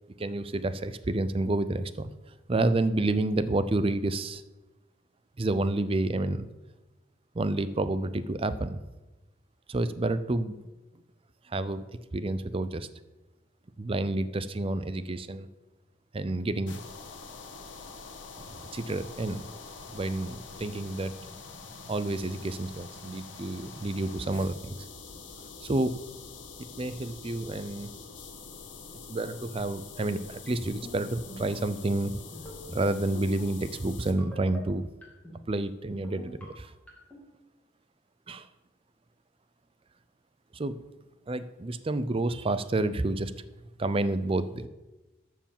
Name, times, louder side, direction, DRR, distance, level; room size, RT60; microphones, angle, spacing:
voice 1, 0.2-2.1 2.5-4.4 5.4-6.4 7.3-8.8 9.7-10.6 11.5-12.9 13.8-15.5 16.1-16.8 18.7-19.5 19.9-21.1 21.9-24.8 25.6-26.0 26.8-27.9 29.1-32.2 32.7-34.9 35.5-36.7 38.3-38.5 40.5-40.8 41.3-43.3 43.8-44.7, right 2 dB, 30° right, 13 dB, 0.5 m, -29 dB
sound 1, 16.7-34.1, left 4 dB, 75° left, 1.3 m, -45 dB
sound 2, 30.5-30.9 31.3-31.6 32.3-32.8 33.1-33.4 34.2-34.6 35.0-35.4 36.0-36.4 36.9-37.2, left 1 dB, 10° left, 2.4 m, -43 dB
13.0 x 4.6 x 7.3 m, 1.1 s
head